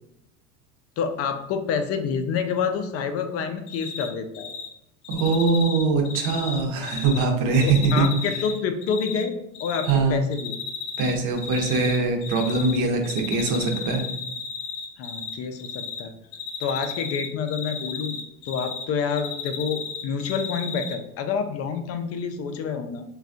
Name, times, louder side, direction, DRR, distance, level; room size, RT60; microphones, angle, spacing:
voice 1, 1.0-4.5 7.6-9.3 9.6-10.5 15.0-16.1 16.6-18.2 18.4-23.0, left 6 dB, 35° left, 7 dB, 0.4 m, -28 dB
Cricket, 3.7-4.1 4.3-4.7 5.0-7.2 7.5-9.2 9.5-9.9 10.3-11.1 11.4-12.8 13.0-15.3 15.6-16.0 16.3-18.8 19.1-20.9, left 7 dB, 90° left, 0.7 m, -33 dB
voice 2, 5.1-8.1 9.9-10.2 11.0-14.0, right 4 dB, 45° right, 3 dB, 0.8 m, -22 dB
3.2 x 2.3 x 2.5 m, 0.80 s
hypercardioid pair, 90°, 43 cm